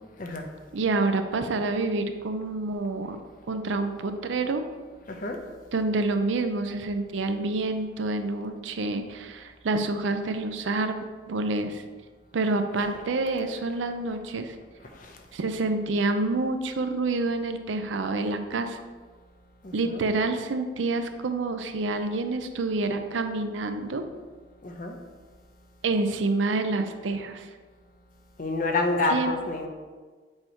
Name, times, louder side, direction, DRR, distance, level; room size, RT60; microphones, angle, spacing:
voice 1, 0.7-3.2 3.5-4.6 5.7-11.0 11.3-11.8 12.3-14.6 15.3-18.8 19.7-24.0 25.8-27.5 29.1-29.3, right 3 dB, 85° right, 7 dB, 0.5 m, -27 dB
voice 2, 19.6-20.0 24.6-25.0 28.4-29.7, left 2 dB, 45° left, 3 dB, 0.7 m, -28 dB
7.5 x 2.9 x 4.4 m, 1.4 s
head